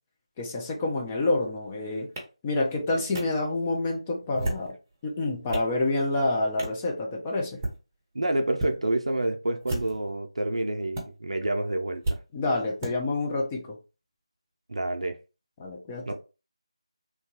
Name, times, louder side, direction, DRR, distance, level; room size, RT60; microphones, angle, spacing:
voice 1, 0.4-2.1 2.4-4.7 5.0-7.6 12.3-13.8 15.6-16.1, left 2 dB, 15° left, 0.4 m, -28 dB
sound 1, 2.2-2.3 3.1-3.2 4.2-4.7 5.2-5.7 6.6-6.8 7.5-7.8 8.5-8.7 9.6-10.1 10.9-11.0 12.0-12.2 12.8-12.9, right 1 dB, 20° right, 0.7 m, -32 dB
voice 2, 8.1-12.2 14.7-15.2 16.1-16.2, right 1 dB, 70° right, 0.5 m, -28 dB
3.0 x 2.2 x 2.8 m
figure-of-eight pair, 160°, 3 cm